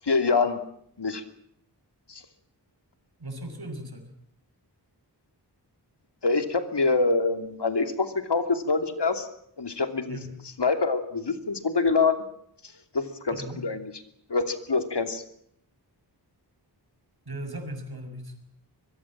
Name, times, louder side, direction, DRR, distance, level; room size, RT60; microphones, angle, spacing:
voice 1, 0.0-0.6 1.0-1.2 2.1-2.2 6.2-9.3 9.6-10.2 10.6-12.2 12.9-13.8 14.3-15.2, left 4 dB, 75° left, 8 dB, 3.0 m, -25 dB
voice 2, 3.2-4.1 10.1-10.4 13.4-13.6 17.3-18.3, right 1 dB, 60° right, 6 dB, 6.3 m, -37 dB
25.0 x 21.5 x 7.5 m, 0.71 s
wide cardioid pair, 70°, 42 cm